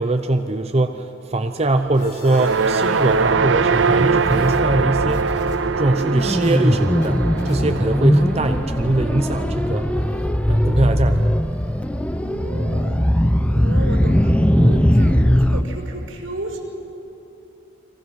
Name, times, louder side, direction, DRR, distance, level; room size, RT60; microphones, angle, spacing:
voice 1, 0.0-5.4 5.8-7.2 7.4-9.9 10.5-11.3, right 2 dB, 30° right, 7 dB, 0.7 m, -22 dB
sound 1, 1.9-3.4 3.6-5.6 5.9-6.6 7.0-7.1 7.4-7.6, left 1 dB, 60° left, 4.4 m, -39 dB
sound 2, 2.2-10.5, right 5 dB, 70° right, 0.6 m, -23 dB
sound 3, 2.7-15.6, equal, 5° left, 0.7 m, -20 dB
voice 2, 12.1-13.0 13.5-16.6, right 1 dB, 90° right, 2 dB, 5.4 m, -33 dB
29.5 x 23.5 x 6.4 m, 2.9 s
head